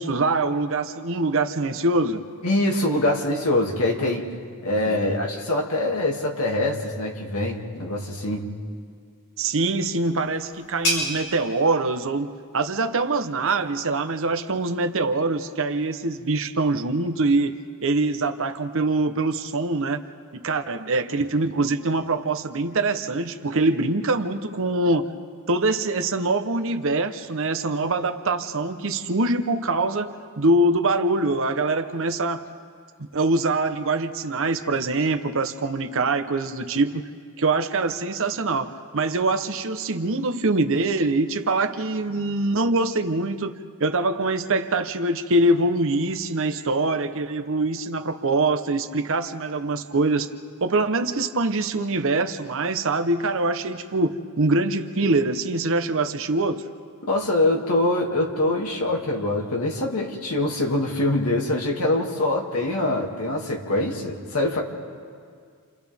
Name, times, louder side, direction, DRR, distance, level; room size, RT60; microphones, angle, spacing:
voice 1, 0.0-2.2 4.9-5.2 9.4-20.0 20.3-25.1 25.5-32.4 33.1-37.1 37.4-43.5 43.8-50.3 50.6-56.6, right 2 dB, 60° right, 8 dB, 1.0 m, -24 dB
voice 2, 2.4-4.2 4.6-8.4 57.1-64.6, left 1 dB, 80° left, 0 dB, 2.5 m, -24 dB
sound 1, 9.5-14.9, equal, 60° left, 6.1 m, -34 dB
29.0 x 29.0 x 3.6 m, 2.1 s
head